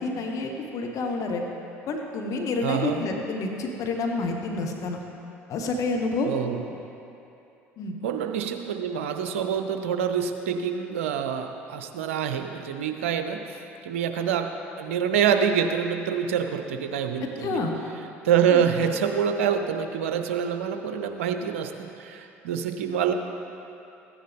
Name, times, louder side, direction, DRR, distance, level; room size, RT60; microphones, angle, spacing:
voice 1, 0.0-1.4 1.9-5.0 5.5-6.3 7.8-7.9 17.4-17.7 18.5-18.6, left 3 dB, 50° left, 2 dB, 1.2 m, -28 dB
voice 2, 2.6-3.0 6.3-6.6 8.0-13.6 13.8-14.5 14.8-17.6 18.2-23.1, right 8 dB, 75° right, 6 dB, 0.7 m, -26 dB
14.5 x 10.0 x 3.5 m, 2.8 s
hypercardioid pair, 60°, 7 cm